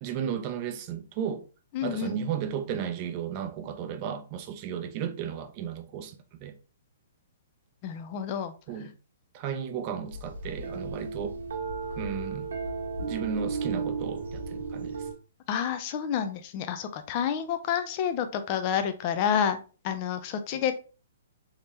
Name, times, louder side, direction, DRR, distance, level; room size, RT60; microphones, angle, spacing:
voice 1, 0.0-1.4 1.8-6.5 8.7-8.9 9.3-11.4 12.0-12.5 13.0-15.0 20.5-20.6, right 8 dB, 30° right, 0.6 m, -34 dB
voice 2, 1.7-2.2 7.8-8.5 15.5-19.6 19.8-20.8, left 8 dB, 35° left, 0.5 m, -29 dB
sound 1, 10.1-15.1, right 4 dB, 85° right, 1.4 m, -34 dB
3.6 x 2.8 x 3.2 m
hypercardioid pair, 155°, 0 cm